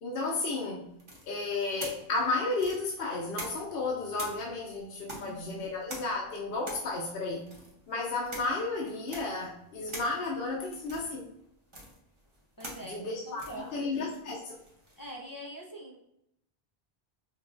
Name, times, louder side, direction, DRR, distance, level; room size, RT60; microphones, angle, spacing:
voice 1, 0.0-0.9 1.2-7.5 7.9-11.2 12.8-14.6, left 3 dB, 70° left, -2 dB, 0.8 m, -33 dB
sound 1, 1.0-3.8 4.1-15.1, right 1 dB, 30° right, 0.7 m, -46 dB
voice 2, 5.1-5.7 12.6-14.1 15.0-16.0, right 1 dB, 30° left, -1 dB, 0.4 m, -44 dB
5.5 x 2.2 x 2.5 m, 0.77 s
omnidirectional pair, 1.1 m